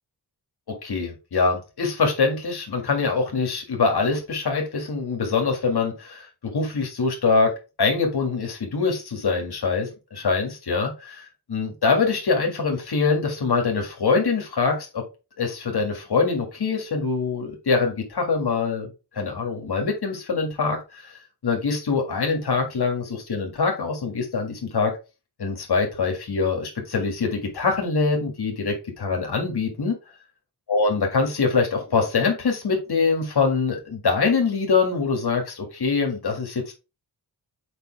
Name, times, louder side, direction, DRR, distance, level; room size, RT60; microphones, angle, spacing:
voice 1, 0.7-15.0 15.4-18.9 19.1-21.1 21.4-24.9 25.4-29.9 30.7-36.7, left 4 dB, 75° left, 2 dB, 1.9 m, -24 dB
6.8 x 5.3 x 3.3 m, 0.29 s
wide cardioid pair, 90°, 39 cm